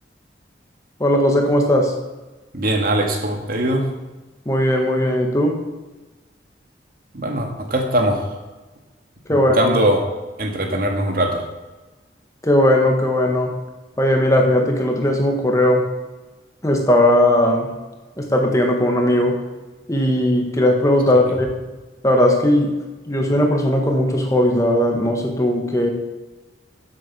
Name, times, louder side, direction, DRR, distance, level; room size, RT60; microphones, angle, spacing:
voice 1, 1.0-1.9 4.4-5.6 9.3-9.7 12.4-13.6 14.0-15.9 16.6-17.7 18.2-19.4 19.9-21.5 22.0-22.7 23.1-25.9, left 1 dB, 20° left, 2 dB, 1.6 m, -18 dB
voice 2, 2.5-3.9 7.1-8.3 9.3-10.0 10.4-11.4, right 1 dB, 55° right, 2 dB, 2.0 m, -21 dB
11.0 x 7.9 x 6.9 m, 1.1 s
head